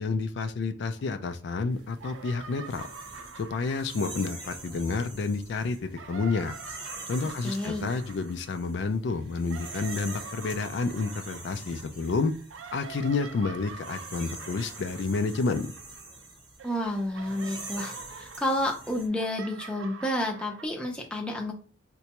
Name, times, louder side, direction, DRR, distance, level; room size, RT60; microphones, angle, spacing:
voice 1, 0.0-2.9 3.3-6.5 7.1-12.3 12.7-15.7, left 4 dB, 65° left, 8 dB, 0.3 m, -30 dB
sound 1, 1.0-1.6 1.9-5.2 5.7-16.3 16.6-20.7, right 5 dB, 85° right, 0.4 m, -46 dB
sound 2, 1.8-19.1, right 2 dB, 25° right, 0.9 m, -45 dB
voice 2, 7.4-7.9 16.6-21.5, left 1 dB, 5° left, 1 dB, 0.5 m, -30 dB
3.9 x 2.2 x 2.9 m, 0.38 s
head